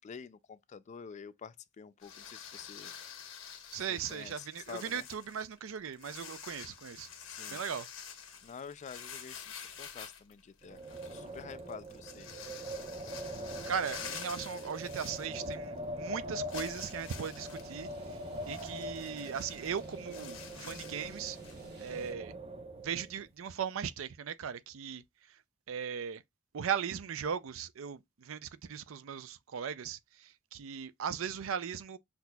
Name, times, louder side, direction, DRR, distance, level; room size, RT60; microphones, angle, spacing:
voice 1, 0.0-2.9 3.8-5.1 7.2-7.6 8.4-12.4, left 6 dB, 35° left, 0.3 m, -48 dB
sound 1, 2.0-15.8 16.1-16.2 16.5-21.6, left 7 dB, 70° left, 1.2 m, -48 dB
voice 2, 3.7-7.1 7.5-7.9 13.7-17.9 18.5-21.4 21.8-22.3 22.8-25.0 25.7-26.2 26.5-32.0, right 7 dB, 80° right, 0.4 m, -38 dB
Wind, 10.6-23.2, equal, 30° right, 0.7 m, -43 dB
sound 2, 17.0-22.1, equal, 55° right, 1.4 m, -54 dB
5.9 x 2.8 x 2.2 m
head